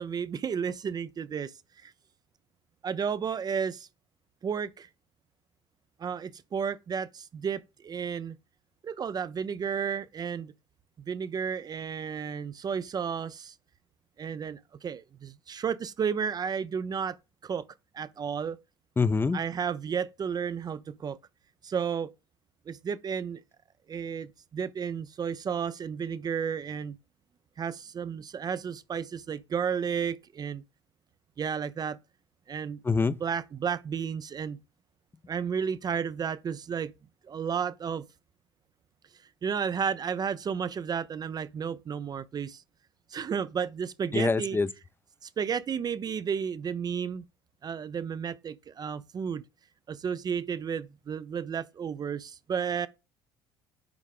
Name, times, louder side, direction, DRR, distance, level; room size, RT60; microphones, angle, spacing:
voice 1, 0.0-1.5 1.8-1.9 2.8-3.9 4.4-4.9 6.0-8.4 8.8-10.5 11.1-13.5 14.2-17.2 17.4-17.6 17.9-18.6 19.3-21.2 21.6-22.1 22.7-23.4 23.9-27.0 27.6-30.6 31.4-32.0 32.5-34.6 35.3-36.9 37.3-38.0 39.4-42.6 43.1-44.6 45.2-47.2 47.6-49.4 49.9-52.9, right 7 dB, 35° right, 0.5 m, -32 dB
voice 2, 19.0-19.4 32.8-33.1 44.1-44.7, left 4 dB, 20° left, 0.5 m, -25 dB
9.5 x 3.6 x 3.7 m
hypercardioid pair, 60°, 12 cm